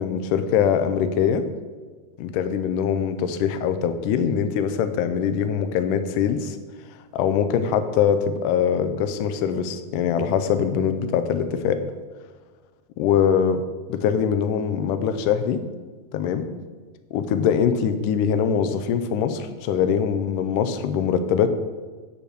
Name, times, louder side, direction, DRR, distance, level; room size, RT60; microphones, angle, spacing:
voice 1, 0.0-1.4 2.2-6.6 7.1-11.8 13.0-13.6 13.9-15.6 16.1-16.5 17.1-21.5, left 7 dB, 80° left, 9 dB, 2.2 m, -22 dB
8.8 x 5.3 x 6.5 m, 1.4 s
omnidirectional pair, 3.7 m